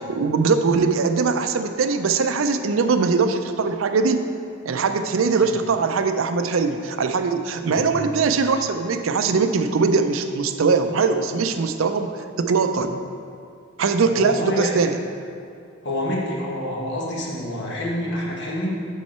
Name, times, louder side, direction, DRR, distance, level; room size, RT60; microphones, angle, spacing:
voice 1, 0.1-4.3 4.7-12.1 12.4-13.0 13.8-15.0, right 4 dB, 85° right, 8 dB, 0.5 m, -21 dB
voice 2, 14.1-14.8 15.8-18.7, left 1 dB, 55° left, -3 dB, 1.3 m, -27 dB
7.3 x 5.6 x 4.3 m, 2.3 s
head